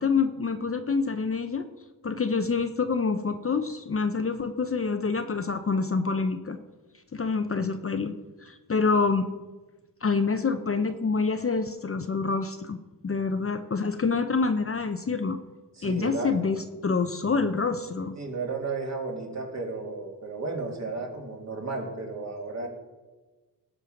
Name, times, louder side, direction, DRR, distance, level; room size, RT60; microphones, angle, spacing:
voice 1, 0.0-1.7 2.0-6.6 7.1-8.1 8.4-9.3 10.0-12.8 13.0-15.4 15.8-18.2, left 4 dB, 35° left, 8 dB, 0.7 m, -27 dB
voice 2, 15.8-16.4 18.2-22.7, right 3 dB, 40° right, 0 dB, 2.6 m, -33 dB
17.5 x 6.2 x 5.1 m, 1.2 s
cardioid pair, 80°, 40 cm